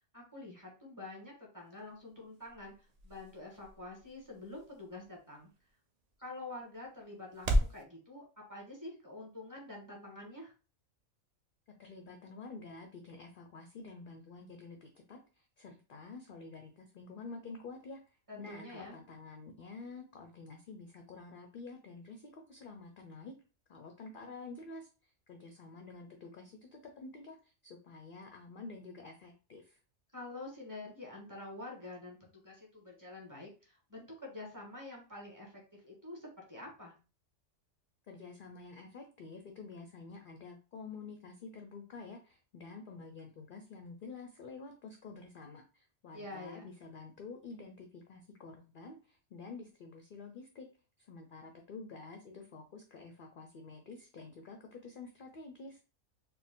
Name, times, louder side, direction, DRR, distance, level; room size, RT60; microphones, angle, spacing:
voice 1, 0.1-2.7 3.0-5.5 6.2-8.2 8.5-10.5 18.3-19.0 30.1-36.9 46.1-46.7, left 2 dB, 15° right, -2 dB, 1.4 m, -47 dB
sound 1, 1.6-7.8, equal, 50° right, 0.4 m, -38 dB
voice 2, 11.8-18.0 18.4-23.3 23.7-24.9 25.3-29.8 38.1-50.7 51.0-55.8, left 4 dB, 55° left, 3 dB, 0.6 m, -49 dB
4.3 x 2.1 x 3.6 m, 0.33 s
omnidirectional pair, 1.4 m